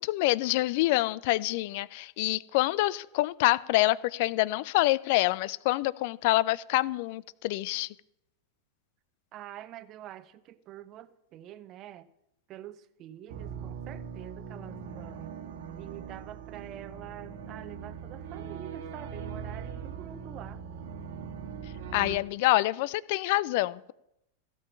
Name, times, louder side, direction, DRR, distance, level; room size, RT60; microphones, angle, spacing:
voice 1, 0.0-7.9 21.9-23.9, left 18 dB, 50° left, 0.4 m, -26 dB
voice 2, 9.3-12.1 12.5-15.3 15.8-20.6, right 12 dB, 35° right, 0.8 m, -46 dB
sound 1, 13.3-22.2, right 7 dB, 55° right, 1.4 m, -41 dB
16.0 x 5.5 x 8.6 m
figure-of-eight pair, 90°, 0 cm